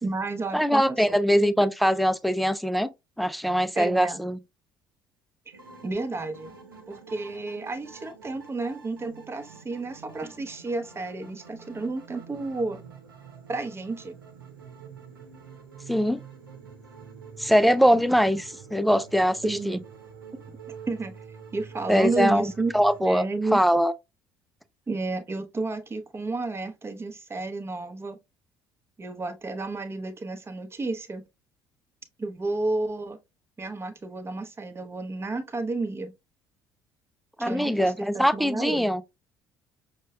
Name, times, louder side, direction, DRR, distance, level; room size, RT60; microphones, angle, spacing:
voice 1, 0.0-1.2 3.7-4.2 5.5-6.5 6.9-12.8 13.5-14.1 19.4-19.8 20.9-21.2 21.5-22.7 23.0-23.6 24.9-28.2 29.0-31.2 32.2-33.2 33.6-36.1 37.4-38.9, right 3 dB, 20° right, 0.8 m, -31 dB
voice 2, 0.5-2.9 3.2-4.4 15.9-16.2 17.4-19.8 21.9-23.2 23.5-23.9 37.4-39.0, equal, ahead, 0.4 m, -22 dB
meditation music and voice by kris, 5.5-23.0, right 6 dB, 80° right, 0.8 m, -47 dB
6.3 x 2.2 x 2.2 m
figure-of-eight pair, 55°, 11 cm